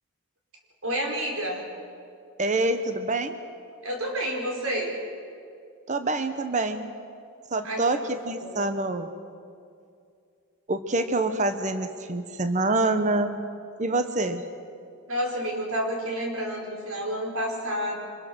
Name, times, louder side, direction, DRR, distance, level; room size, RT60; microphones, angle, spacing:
voice 1, 0.8-1.6 3.8-4.9 7.6-7.9 8.4-8.7 15.1-18.0, equal, 70° right, 0 dB, 4.8 m, -29 dB
voice 2, 2.4-3.3 5.9-6.9 7.5-9.1 10.7-13.3 13.8-14.4, right 2 dB, 35° right, 9 dB, 1.0 m, -26 dB
25.5 x 21.5 x 6.2 m, 2.4 s
head